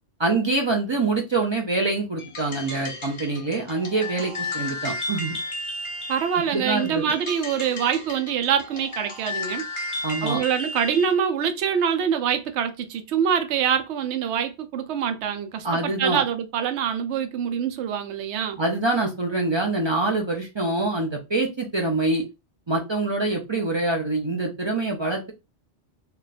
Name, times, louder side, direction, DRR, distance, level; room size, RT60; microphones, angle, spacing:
voice 1, 0.2-5.4 6.5-7.0 10.0-10.4 15.6-16.2 18.6-22.2 22.7-25.3, right 2 dB, 50° right, 0.3 m, -25 dB
sound 1, 2.2-11.2, left 2 dB, 30° left, 0.6 m, -34 dB
voice 2, 6.1-9.7 10.2-18.6, right 8 dB, 70° right, 0.8 m, -25 dB
2.4 x 2.2 x 3.9 m
omnidirectional pair, 1.2 m